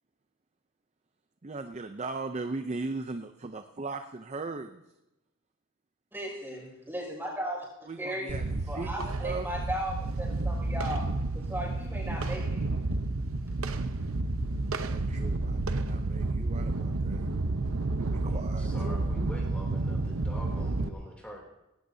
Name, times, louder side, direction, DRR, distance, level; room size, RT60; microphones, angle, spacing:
voice 1, 1.4-4.8 7.9-9.7 14.8-17.3 17.8-19.1, right 3 dB, 30° right, 7 dB, 0.6 m, -38 dB
voice 2, 6.1-7.7 8.0-8.4 8.7-11.1 11.3-12.6, equal, 10° right, -3 dB, 5.9 m, -36 dB
sound 1, 8.3-20.9, right 2 dB, 70° right, 0.8 m, -31 dB
voice 3, 18.2-21.4, equal, 5° left, -2 dB, 3.0 m, -45 dB
18.5 x 17.0 x 2.8 m, 0.95 s
head